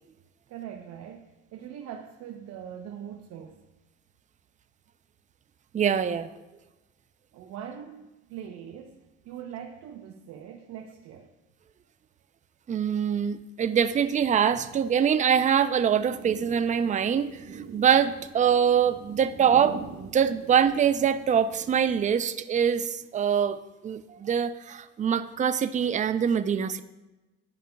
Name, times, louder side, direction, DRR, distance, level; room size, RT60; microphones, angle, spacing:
voice 1, 0.5-3.7 7.3-11.3, right 9 dB, 60° right, 3 dB, 0.8 m, -42 dB
voice 2, 5.7-6.3 12.7-26.8, right 8 dB, 25° right, 12 dB, 0.4 m, -24 dB
sound 1, 13.9-22.1, right 6 dB, 45° right, 1.4 m, -45 dB
12.5 x 5.0 x 2.3 m, 1.1 s
supercardioid pair, 80°, 31 cm